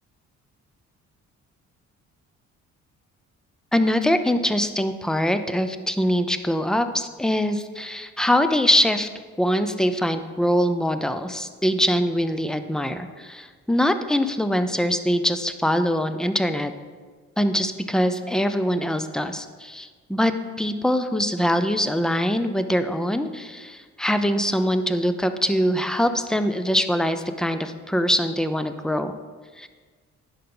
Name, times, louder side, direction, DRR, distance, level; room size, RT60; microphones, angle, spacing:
voice 1, 3.7-9.1 9.4-16.7 17.4-29.1 29.6-29.7, equal, ahead, 9 dB, 0.5 m, -23 dB
10.0 x 5.7 x 3.8 m, 1.5 s
cardioid pair, 90°, 30 cm